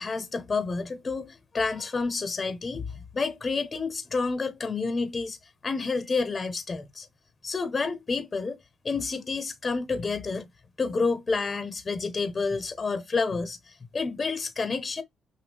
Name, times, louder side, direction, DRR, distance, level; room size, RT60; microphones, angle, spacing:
voice 1, 0.0-5.4 5.6-7.1 7.4-8.6 8.8-10.5 10.8-15.0, left 4 dB, 35° left, 0.8 m, -29 dB
6.2 x 2.2 x 3.4 m
cardioid pair, 95°, 0 cm